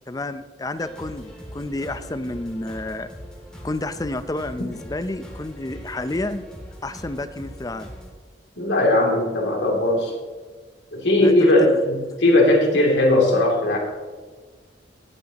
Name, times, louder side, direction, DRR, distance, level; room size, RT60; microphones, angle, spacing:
voice 1, 0.1-3.1 3.6-6.4 6.8-7.9 11.2-11.8, left 2 dB, 20° left, 11 dB, 0.5 m, -30 dB
sound 1, 0.8-8.1, equal, 5° left, 2.4 m, -40 dB
voice 2, 8.6-10.1 10.9-13.8, left 1 dB, 85° left, -1 dB, 2.9 m, -18 dB
18.0 x 7.6 x 3.0 m, 1.4 s
head